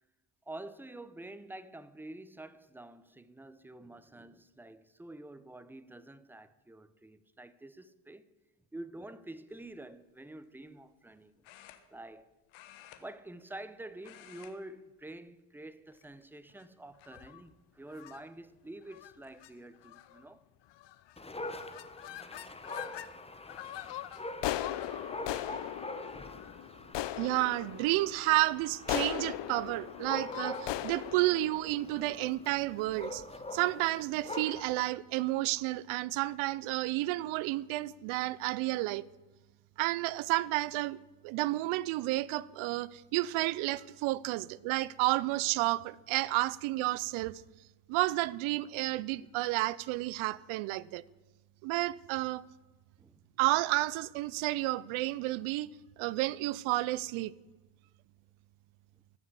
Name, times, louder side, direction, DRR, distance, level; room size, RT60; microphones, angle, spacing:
voice 1, 0.5-8.3 8.7-11.3 11.9-12.3 13.0-20.4 26.5-27.1 53.0-53.2, right 1 dB, 5° right, 0.7 m, -48 dB
sound 1, 9.5-9.8 11.4-12.2 12.5-13.7 14.0-14.6 14.9-15.1 15.9-16.4 17.0-17.1 18.5-18.6 19.0-19.3, left 12 dB, 90° left, 1.3 m, -55 dB
sound 2, 17.0-17.4 18.0-18.2 18.9-19.1 19.4-19.5 19.8-20.2 20.8-21.1 21.4-23.1 23.5-32.7, left 14 dB, 60° left, 0.8 m, -39 dB
Dog, 21.2-34.9, left 2 dB, 15° left, 1.1 m, -44 dB
voice 2, 27.2-33.2 33.5-39.0 39.8-41.0 41.2-47.4 47.9-51.0 51.6-52.4 53.4-55.7 56.0-57.3, right 18 dB, 80° right, 0.6 m, -31 dB
14.5 x 6.2 x 8.7 m
supercardioid pair, 80°, 47 cm